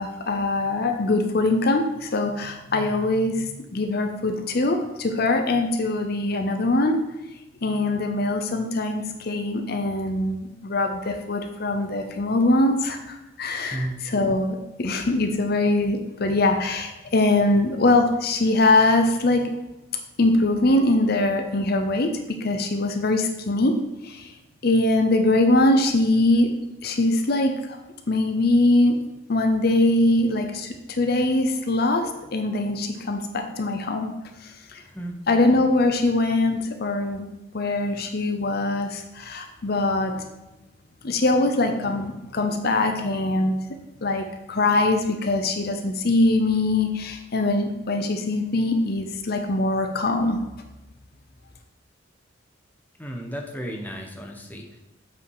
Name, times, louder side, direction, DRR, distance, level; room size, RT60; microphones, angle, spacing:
voice 1, 0.0-7.0 7.6-19.5 20.2-22.1 22.4-23.7 24.0-24.3 24.6-26.5 26.8-27.8 28.1-29.0 29.3-34.1 34.4-34.8 35.3-37.3 37.5-40.2 41.0-43.6 44.0-50.4, left 2 dB, 50° left, 6 dB, 0.7 m, -22 dB
voice 2, 13.6-14.0 34.9-35.2 53.0-54.8, right 1 dB, 10° left, 1 dB, 1.0 m, -34 dB
7.3 x 5.9 x 4.8 m, 1.0 s
head